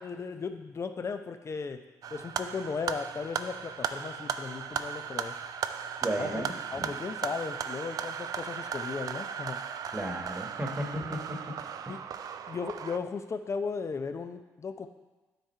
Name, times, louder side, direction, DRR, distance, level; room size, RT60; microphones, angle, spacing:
voice 1, 0.0-1.8 2.1-5.4 6.2-6.4 6.7-9.7 11.9-12.0 12.5-14.9, left 5 dB, 40° left, 8 dB, 0.6 m, -36 dB
sound 1, 2.0-13.0, right 7 dB, 60° right, 0.4 m, -36 dB
voice 2, 6.0-6.9 9.9-11.2, right 1 dB, 20° right, 2 dB, 1.4 m, -34 dB
9.1 x 3.7 x 4.5 m, 1.2 s
supercardioid pair, 55°, 7 cm